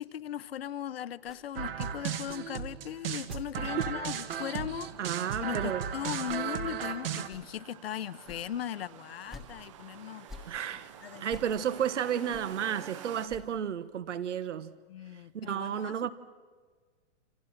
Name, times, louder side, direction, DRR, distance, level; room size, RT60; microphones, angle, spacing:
voice 1, 0.0-10.5 11.0-11.2 14.9-16.0, left 10 dB, 55° left, 0.9 m, -38 dB
sound 1, 1.2-1.4 2.2-2.4 3.2-3.4 4.2-4.4 5.2-5.5 6.2-6.4 7.2-7.5 8.2-8.5 9.2-9.5 10.2-10.5 11.2-11.5 12.2-12.5 13.2-13.5, left 3 dB, ahead, 1.3 m, -49 dB
sound 2, 1.6-7.3, right 8 dB, 50° right, 1.8 m, -35 dB
sound 3, 4.4-13.3, right 9 dB, 25° right, 0.8 m, -50 dB
voice 2, 5.0-5.9 10.5-10.9 11.2-14.7 15.3-16.1, right 9 dB, 75° right, 1.4 m, -32 dB
28.5 x 28.0 x 5.9 m
hypercardioid pair, 170°, 36 cm